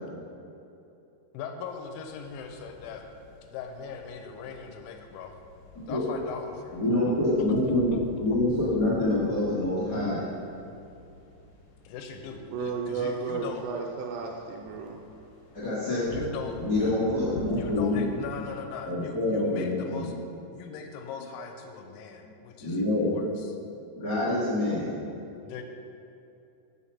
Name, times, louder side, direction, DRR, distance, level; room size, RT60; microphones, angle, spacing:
voice 1, 1.3-3.1 3.5-5.4 5.9-6.8 7.0-8.4 11.8-13.6 14.7-14.8 16.1-16.9 17.5-20.1 20.5-23.6 25.4-25.6, left 6 dB, 90° left, 4 dB, 3.0 m, -40 dB
sound 1, 1.6-18.5, left 2 dB, 65° left, 2.2 m, -45 dB
voice 2, 6.7-7.9 8.2-10.2 15.5-16.1 16.6-18.0 18.9-20.1 22.2-22.3 22.6-23.2 23.5-23.6 24.0-24.9, left 2 dB, 45° left, -10 dB, 1.3 m, -26 dB
voice 3, 12.5-15.0, right 5 dB, 85° right, 0 dB, 2.6 m, -33 dB
7.3 x 6.5 x 5.6 m, 2.7 s
omnidirectional pair, 5.3 m